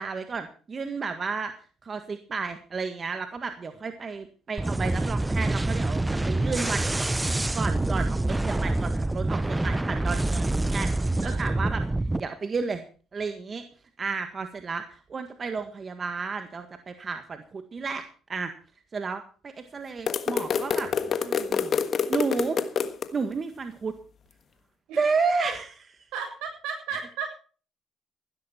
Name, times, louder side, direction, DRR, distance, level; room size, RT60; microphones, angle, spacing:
voice 1, 0.0-1.5 1.8-6.0 6.3-7.1 7.5-11.8 12.2-12.8 13.1-13.6 14.0-18.0 18.3-18.5 18.9-20.9 21.2-21.8 22.1-22.6 23.1-23.9 24.9-25.7, right 4 dB, 40° right, 8 dB, 1.7 m, -32 dB
sound 1, 4.6-12.2, right 2 dB, 15° right, 0.7 m, -26 dB
voice 2, 11.2-11.7 24.9-25.0 25.4-25.5 26.1-27.3, right 6 dB, 80° right, 3 dB, 7.5 m, -35 dB
sound 2, 20.1-23.1, left 6 dB, 55° left, 1.4 m, -27 dB
15.5 x 12.5 x 4.4 m, 0.39 s
supercardioid pair, 70°, 0 cm